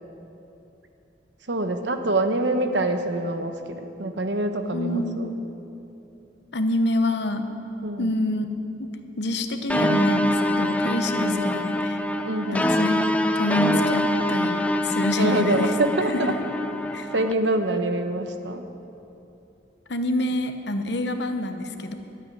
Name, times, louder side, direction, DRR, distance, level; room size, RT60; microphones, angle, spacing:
voice 1, 1.5-5.3 7.8-8.1 11.1-11.5 12.2-12.7 15.2-16.3 17.1-18.6, right 2 dB, 70° right, 7 dB, 1.0 m, -25 dB
voice 2, 4.7-5.4 6.5-7.4 8.0-8.5 8.8-8.9 9.2-12.0 12.5-15.7 16.1-16.3 16.9-17.1 19.9-21.9, left 1 dB, 65° left, 7 dB, 1.0 m, -26 dB
sound 1, 9.7-17.3, left 1 dB, 5° left, 0.4 m, -24 dB
12.5 x 8.6 x 9.5 m, 2.9 s
head